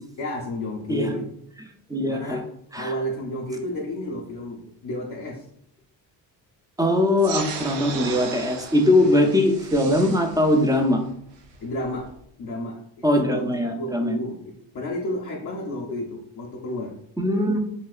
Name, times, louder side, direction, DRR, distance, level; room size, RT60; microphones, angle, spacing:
voice 1, 0.2-1.2 2.1-2.5 2.8-5.4 9.0-9.1 11.6-12.1 12.4-13.4 13.7-17.0, left 1 dB, 45° left, -2 dB, 0.6 m, -31 dB
voice 2, 1.9-2.4 2.7-2.9 6.8-11.0 13.0-14.2 17.2-17.6, left 1 dB, 10° right, 4 dB, 0.5 m, -21 dB
sound 1, 7.2-12.2, right 5 dB, 70° right, 0.7 m, -37 dB
3.1 x 2.7 x 2.4 m, 0.70 s
supercardioid pair, 60°, 44 cm